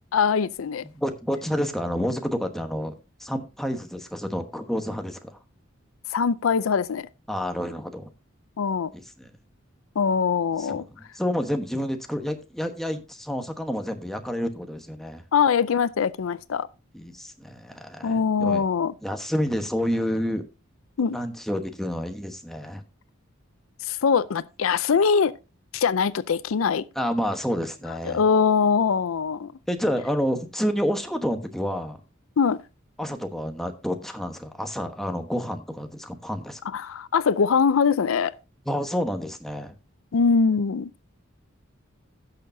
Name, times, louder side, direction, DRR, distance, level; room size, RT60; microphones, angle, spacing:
voice 1, 0.1-0.8 6.1-7.1 8.6-8.9 10.0-10.8 15.3-16.7 18.0-18.9 21.0-21.2 23.8-25.3 25.7-26.9 28.0-29.5 32.4-32.6 36.7-38.3 40.1-40.9, left 6 dB, 85° left, 0.5 m, -22 dB
voice 2, 0.8-2.9 3.2-5.4 7.3-8.1 8.9-9.3 10.6-15.2 16.9-18.6 19.0-20.4 21.1-22.8 26.9-28.2 29.7-32.0 33.0-36.6 38.7-39.8, equal, ahead, 1.1 m, -29 dB
16.0 x 6.6 x 2.7 m
head